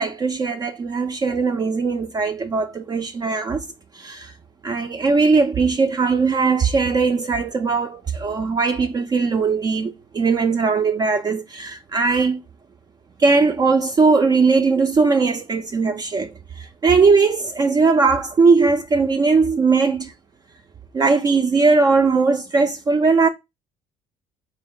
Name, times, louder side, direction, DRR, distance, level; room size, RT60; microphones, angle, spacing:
voice 1, 0.0-3.6 3.9-4.3 4.6-12.4 13.2-16.3 16.6-20.1 20.9-23.3, right 4 dB, 30° right, 0.5 m, -19 dB
4.2 x 2.0 x 3.7 m
supercardioid pair, 85°, 13 cm